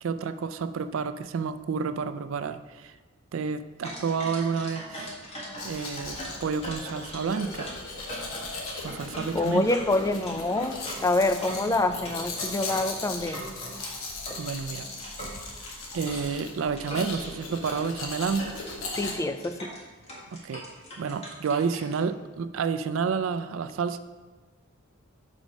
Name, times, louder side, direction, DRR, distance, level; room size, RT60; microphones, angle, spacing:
voice 1, 0.0-3.0 3.3-5.1 5.6-7.7 8.8-9.6 14.4-14.9 15.9-18.5 20.4-20.6 21.0-24.0, right 5 dB, 70° right, 12 dB, 0.4 m, -30 dB
sound 1, 3.8-13.9 14.3-16.3 16.7-17.3 17.7-17.8 18.1-21.9, equal, 30° left, 1.6 m, -41 dB
Domestic sounds home sounds, 5.6-19.1, left 3 dB, 80° left, 1.1 m, -38 dB
voice 2, 9.3-13.4 19.0-19.7, left 2 dB, 15° left, 9 dB, 0.3 m, -26 dB
5.1 x 5.0 x 6.2 m, 1.3 s
head